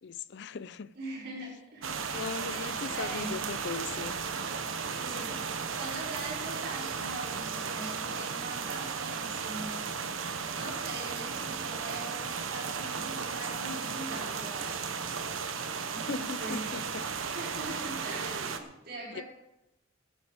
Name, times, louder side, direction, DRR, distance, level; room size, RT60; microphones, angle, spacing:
voice 1, 0.0-0.9 2.1-4.2 15.9-17.3 19.1-19.2, left 5 dB, 60° left, 0.5 m, -39 dB
voice 2, 1.0-2.1 2.4-3.3 4.8-5.4 5.7-9.8 10.5-15.1 15.9-16.7 17.1-19.2, right 2 dB, 55° right, 5.6 m, -42 dB
sound 1, 1.8-18.6, right 5 dB, 80° right, 1.1 m, -35 dB
15.5 x 10.5 x 5.1 m
head